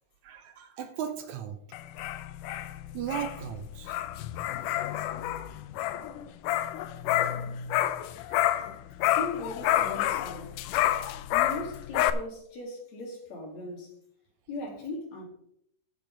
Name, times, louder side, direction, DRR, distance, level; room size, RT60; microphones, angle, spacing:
voice 1, 0.2-1.6 2.9-4.0 8.5-8.7, right 9 dB, 75° right, 1.9 m, -36 dB
sound 1, 1.7-8.7 9.0-12.1, left 13 dB, 80° left, 2.1 m, -29 dB
voice 2, 9.2-10.6 11.3-14.0 14.5-15.3, left 2 dB, 60° left, 3.6 m, -38 dB
14.5 x 5.3 x 5.1 m
omnidirectional pair, 3.7 m